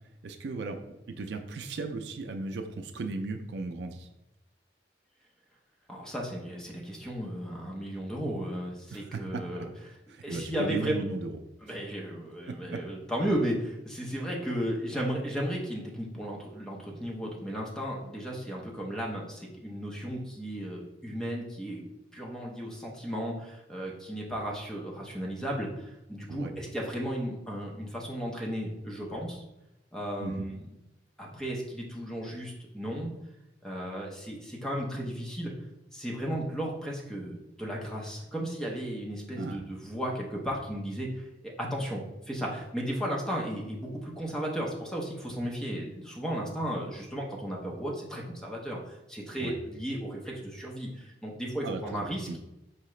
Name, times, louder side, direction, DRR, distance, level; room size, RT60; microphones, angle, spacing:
voice 1, 0.2-0.8 1.1-4.1 8.9-9.4 10.1-11.4 12.5-12.8 26.3-26.5 30.2-30.5 39.3-39.6 49.4-49.5 51.6-52.4, right 3 dB, 65° right, 6 dB, 0.4 m, -36 dB
voice 2, 5.9-10.0 10.2-11.0 11.6-21.8 22.1-29.4 29.9-30.7 31.2-33.1 33.6-35.5 35.9-52.3, equal, 5° left, -3 dB, 0.7 m, -35 dB
4.7 x 2.8 x 3.1 m, 0.92 s
head